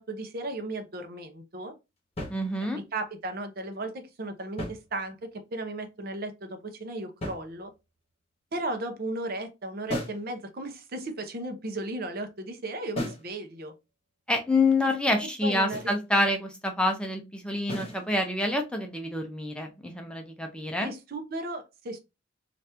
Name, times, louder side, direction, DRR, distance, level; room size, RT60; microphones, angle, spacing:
voice 1, 0.0-1.7 2.7-7.7 8.5-13.7 14.8-15.1 15.4-15.9 20.8-22.0, right 2 dB, 55° right, 0.7 m, -35 dB
sound 1, 2.2-2.9 4.4-5.4 7.2-8.0 9.9-10.3 13.0-13.4 15.7-16.0 17.7-18.1, left 1 dB, 35° left, 1.1 m, -37 dB
voice 2, 2.3-2.8 14.3-20.9, left 2 dB, 5° left, 0.5 m, -27 dB
2.9 x 2.5 x 3.3 m
head